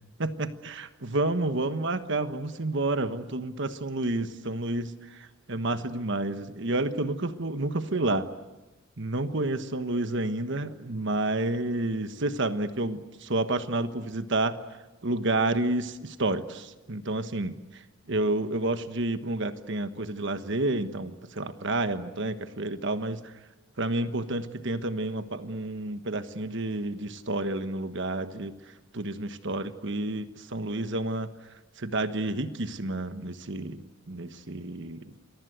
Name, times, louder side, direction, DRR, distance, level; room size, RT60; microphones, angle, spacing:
voice 1, 0.2-8.3 9.0-14.6 15.0-17.5 18.1-23.3 23.8-28.5 28.9-31.3 31.8-33.8 34.1-35.1, right 2 dB, 60° right, 10 dB, 1.3 m, -30 dB
28.5 x 23.5 x 8.1 m, 1.1 s
head